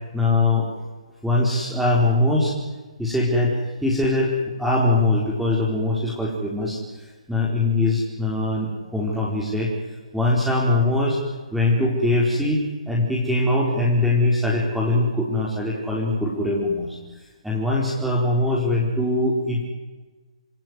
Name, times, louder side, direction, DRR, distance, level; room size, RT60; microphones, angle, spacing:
voice 1, 0.1-0.7 1.2-2.5 3.0-4.3 4.6-6.8 7.3-9.7 10.1-11.2 11.5-17.0 17.4-19.7, left 2 dB, ahead, -4 dB, 4.6 m, -22 dB
27.0 x 20.0 x 9.7 m, 1.3 s
figure-of-eight pair, 140°, 4 cm